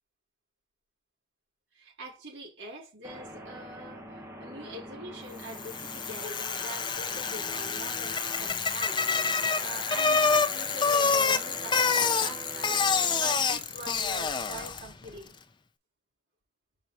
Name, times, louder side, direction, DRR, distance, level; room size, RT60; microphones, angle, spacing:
voice 1, 1.7-9.0 9.6-12.8 13.1-15.4, right 1 dB, 75° right, 4.8 m, -43 dB
sound 1, 3.0-13.4, right 1 dB, 15° right, 1.3 m, -44 dB
Bicycle, 5.5-14.9, left 5 dB, 25° left, 0.7 m, -27 dB
6.6 x 4.7 x 4.3 m
head